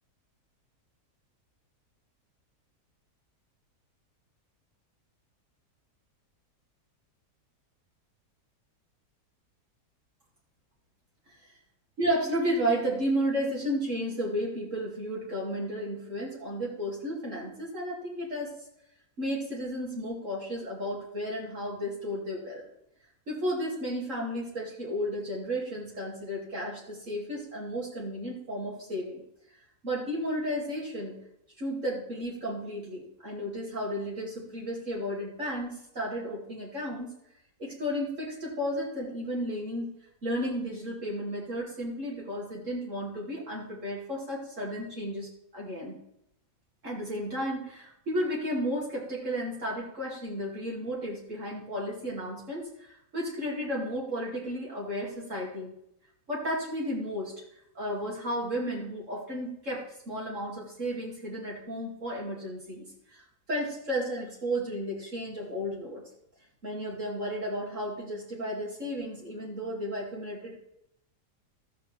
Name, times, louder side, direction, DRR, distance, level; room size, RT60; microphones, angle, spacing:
voice 1, 12.0-18.5 19.2-22.6 23.3-29.2 29.8-31.1 31.6-37.1 37.6-39.9 40.2-45.9 46.8-55.7 56.3-57.4 57.7-63.2 63.5-66.0 66.6-70.6, equal, 50° right, -4 dB, 2.8 m, -33 dB
13.5 x 4.6 x 7.4 m, 0.78 s
omnidirectional pair, 1.7 m